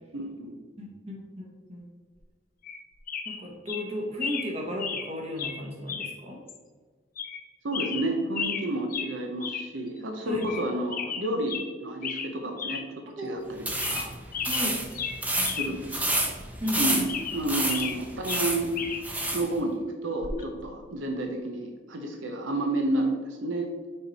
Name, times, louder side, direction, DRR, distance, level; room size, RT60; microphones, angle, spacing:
voice 1, 0.1-0.6 7.6-12.8 13.2-14.1 15.5-16.2 16.8-18.7 19.3-23.7, right 1 dB, 80° right, 2 dB, 0.8 m, -30 dB
voice 2, 0.8-1.8 3.2-6.4 10.2-10.5 13.2-13.5 14.5-14.8 15.4-15.6 15.8-15.9 16.6-17.1, equal, 30° right, -1 dB, 1.5 m, -35 dB
sound 1, 2.6-2.8 3.1-3.4 3.7-3.8 4.2-4.5 4.8-5.1 5.4-5.6 5.9-6.1 6.5-6.6 7.2-7.4 7.7-8.6 8.9-9.1 9.4-9.7 10.0-10.1 10.4-10.6 10.9-11.7 12.0-12.3 12.6-12.8 13.2-13.3 13.7-14.1 14.3-15.7 16.0-16.1 16.6-18.0 18.3-19.0 20.2-20.4, left 6 dB, 45° left, 0.7 m, -34 dB
sound 2, 13.6-19.5, right 1 dB, 10° right, 0.8 m, -30 dB
6.4 x 4.5 x 4.2 m, 1.5 s
head